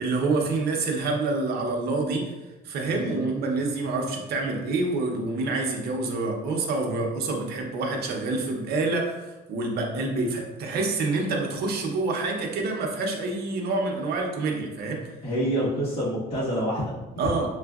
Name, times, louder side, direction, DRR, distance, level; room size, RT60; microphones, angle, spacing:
voice 1, 0.0-2.3 2.6-15.0 17.2-17.5, right 3 dB, 65° right, 1 dB, 0.8 m, -27 dB
voice 2, 2.9-3.3 15.2-17.2, equal, 35° left, -8 dB, 1.3 m, -28 dB
5.9 x 2.4 x 2.3 m, 1.1 s
cardioid pair, 145°, 18 cm